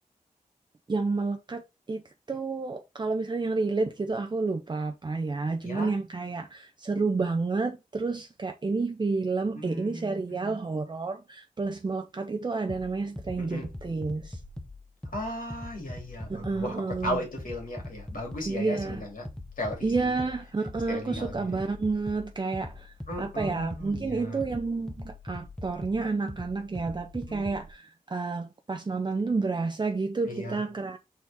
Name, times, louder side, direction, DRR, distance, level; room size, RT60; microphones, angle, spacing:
voice 1, 0.9-1.6 1.9-14.4 16.3-17.2 18.5-19.0 19.8-31.0, right 3 dB, 30° right, 0.6 m, -30 dB
voice 2, 5.6-5.9 9.5-10.5 13.4-13.7 15.1-16.8 17.0-19.2 19.6-20.1 20.9-21.5 23.1-24.4 27.3-27.6 30.3-30.6, left 1 dB, 70° left, 2.9 m, -36 dB
sound 1, 12.7-27.7, left 1 dB, 5° left, 0.9 m, -42 dB
6.2 x 4.2 x 3.5 m
wide cardioid pair, 85°, 15 cm